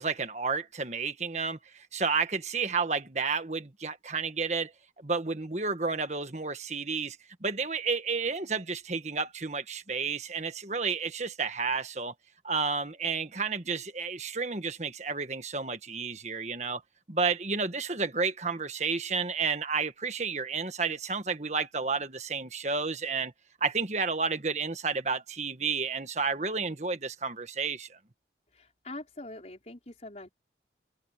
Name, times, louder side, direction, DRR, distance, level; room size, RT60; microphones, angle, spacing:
voice 1, 0.0-4.7 5.0-12.1 12.4-16.8 17.1-23.3 23.6-28.0, right 4 dB, 40° right, 1.5 m, -31 dB
voice 2, 28.5-30.3, left 2 dB, 40° left, 5.4 m, -43 dB
head